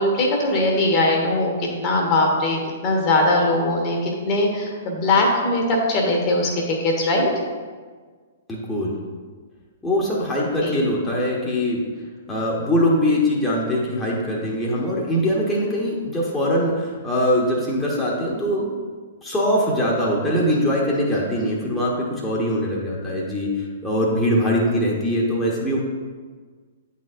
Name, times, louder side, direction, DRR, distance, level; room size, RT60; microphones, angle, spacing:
voice 1, 0.0-7.3 10.6-10.8, left 2 dB, 35° left, 0 dB, 1.2 m, -21 dB
voice 2, 8.5-9.0 9.8-11.8 12.3-18.7 19.2-25.8, equal, 10° left, -5 dB, 1.0 m, -22 dB
9.1 x 4.2 x 2.6 m, 1.5 s
figure-of-eight pair, 115°, 0 cm